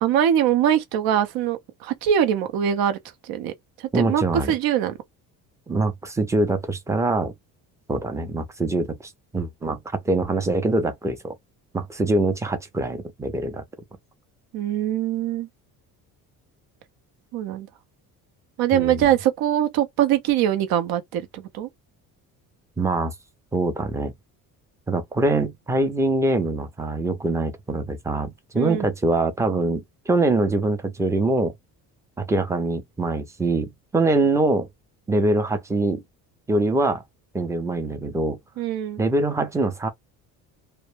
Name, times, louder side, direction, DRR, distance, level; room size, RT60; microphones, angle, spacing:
voice 1, 0.0-3.0 3.2-3.5 3.9-4.9 14.5-15.5 17.3-17.7 18.6-21.7 28.6-28.9 38.6-39.0, right 10 dB, 75° right, 0.7 m, -22 dB
voice 2, 3.9-4.5 5.7-7.3 7.9-11.3 11.7-13.6 18.7-19.1 22.8-23.1 23.5-24.1 24.9-31.5 32.2-34.7 35.1-36.0 36.5-37.0 37.3-38.4 39.0-39.9, right 2 dB, 10° right, 0.4 m, -24 dB
2.1 x 2.0 x 3.0 m
cardioid pair, 135°, 36 cm